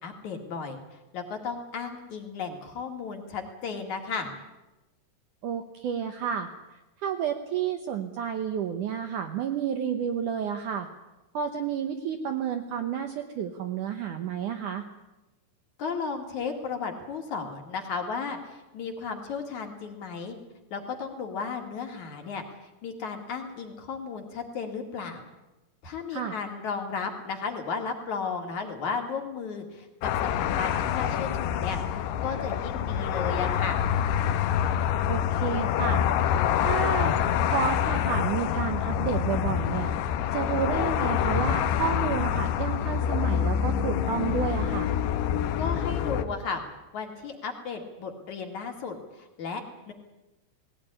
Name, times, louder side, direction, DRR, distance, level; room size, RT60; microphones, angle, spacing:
voice 1, 0.0-4.3 15.8-20.4 20.7-22.4 22.8-25.3 25.8-33.8 45.6-46.6 46.9-49.9, left 5 dB, 50° left, 4 dB, 3.2 m, -34 dB
voice 2, 5.4-6.5 7.0-10.9 11.3-14.9 26.1-26.3 35.1-36.0 36.6-37.2 37.4-39.9 40.3-44.9, right 8 dB, 70° right, 7 dB, 2.0 m, -30 dB
sound 1, 30.0-46.2, left 9 dB, 75° left, 3.0 m, -26 dB
19.5 x 17.5 x 10.0 m, 1.0 s
omnidirectional pair, 4.8 m